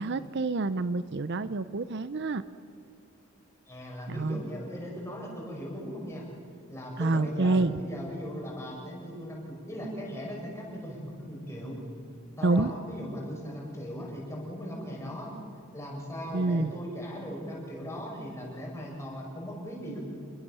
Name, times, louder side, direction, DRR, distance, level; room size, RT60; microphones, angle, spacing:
voice 1, 0.0-2.4 4.1-4.4 7.0-7.8 12.4-12.7 16.3-16.7, right 3 dB, 50° right, 14 dB, 0.6 m, -27 dB
voice 2, 3.7-6.3 6.7-9.4 9.7-11.8 12.4-15.3 15.7-20.0, equal, 15° left, -2 dB, 6.2 m, -38 dB
27.5 x 21.5 x 6.9 m, 2.6 s
head